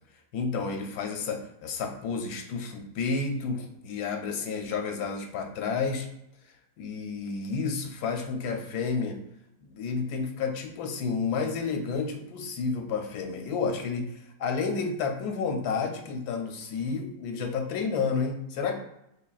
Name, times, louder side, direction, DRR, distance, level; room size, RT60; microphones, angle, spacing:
voice 1, 0.3-6.1 6.8-9.2 9.7-18.8, left 5 dB, 90° left, 4 dB, 1.1 m, -31 dB
5.4 x 2.2 x 2.4 m, 0.82 s
omnidirectional pair, 1.6 m